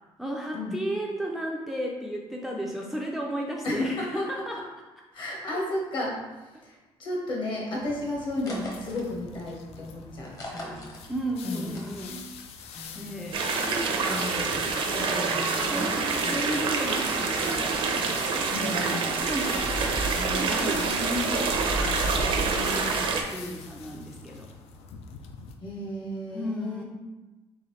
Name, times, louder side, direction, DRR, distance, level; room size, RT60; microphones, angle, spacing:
voice 1, 0.2-4.6 5.5-5.6 10.4-12.2 13.0-13.4 14.8-17.8 18.6-24.5 26.3-26.8, equal, ahead, -1 dB, 0.4 m, -34 dB
voice 2, 3.6-4.3 5.1-6.2 6.6-10.8 11.4-11.8 12.7-13.3 13.6-14.7 15.1-15.9 16.2-16.4 18.5-19.1 25.6-26.8, left 1 dB, 50° left, -2 dB, 1.2 m, -33 dB
Walking through autumn leaves, 7.7-25.5, left 6 dB, 80° left, 0.4 m, -44 dB
sound 1, 8.4-12.4 12.7-18.7, left 1 dB, 35° left, 0.9 m, -45 dB
sound 2, 13.3-23.2, right 4 dB, 60° right, 0.6 m, -27 dB
3.9 x 3.3 x 3.2 m, 1.1 s
cardioid pair, 140°, 10 cm